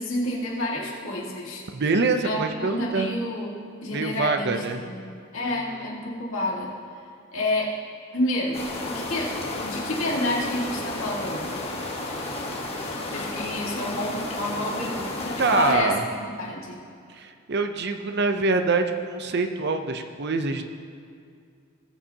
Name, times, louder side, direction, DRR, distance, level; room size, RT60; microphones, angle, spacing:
voice 1, 0.0-1.6 2.2-3.5 3.8-6.7 7.3-7.7 8.1-11.6 13.1-16.8, left 1 dB, 65° left, -4 dB, 2.1 m, -29 dB
voice 2, 1.7-3.1 3.9-4.8 15.4-16.0 17.1-20.7, right 3 dB, 50° right, 7 dB, 0.6 m, -25 dB
sound 1, 8.5-15.7, left 2 dB, 30° left, 1.2 m, -32 dB
19.0 x 7.1 x 2.9 m, 2.3 s
head